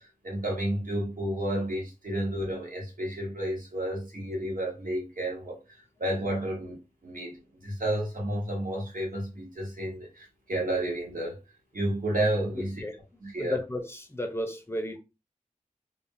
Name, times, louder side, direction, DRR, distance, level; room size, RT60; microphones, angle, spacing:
voice 1, 0.0-11.4 11.7-12.8 13.2-13.6, right 1 dB, 90° right, 1.1 m, -31 dB
voice 2, 12.5-13.0 13.4-15.0, left 1 dB, 20° left, 0.6 m, -33 dB
3.3 x 2.2 x 2.6 m
wide cardioid pair, 50°, 14 cm